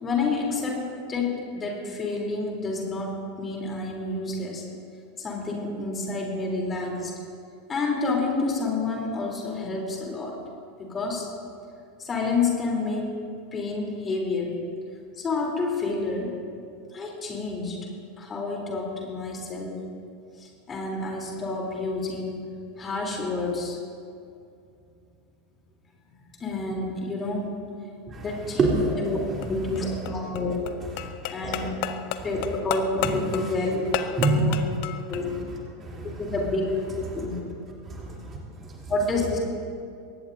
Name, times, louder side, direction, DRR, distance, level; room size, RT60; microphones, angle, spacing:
voice 1, 0.0-4.6 5.2-7.1 7.7-10.4 10.8-11.3 12.0-13.2 13.5-14.6 15.2-16.4 16.9-17.8 18.2-19.8 20.4-22.5 22.8-23.8 26.4-27.5 28.2-30.6 31.3-31.8 32.2-34.5 35.1-35.4 36.2-37.4 38.9-39.4, left 3 dB, 25° left, -1 dB, 3.4 m, -29 dB
sound 1, 29.2-35.2, left 10 dB, 50° left, 0.7 m, -33 dB
voice 2, 31.0-31.3 32.2-32.3 33.0-33.5 34.1-34.4 35.1-35.4 35.8-36.2 37.1-37.3 37.9-38.9, right 3 dB, 25° right, -3 dB, 3.2 m, -28 dB
23.0 x 18.5 x 2.7 m, 2.4 s
figure-of-eight pair, 85°, 0 cm